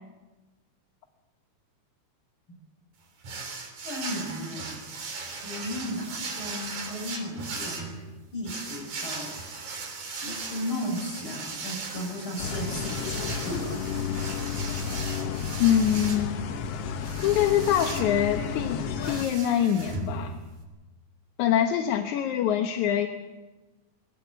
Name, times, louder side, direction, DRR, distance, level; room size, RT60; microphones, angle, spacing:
sound 1, 3.2-20.6, right 4 dB, 80° right, 4.8 m, -38 dB
voice 1, 3.8-4.8 5.4-7.9 8.3-9.3 10.1-13.9, left 1 dB, 40° left, 1 dB, 7.5 m, -35 dB
sound 2, 12.4-19.3, left 7 dB, 60° left, 1.9 m, -32 dB
voice 2, 15.6-16.4 17.2-20.4 21.4-23.1, left 10 dB, 80° left, 5 dB, 2.5 m, -24 dB
22.5 x 17.5 x 8.2 m, 1.2 s
omnidirectional pair, 3.4 m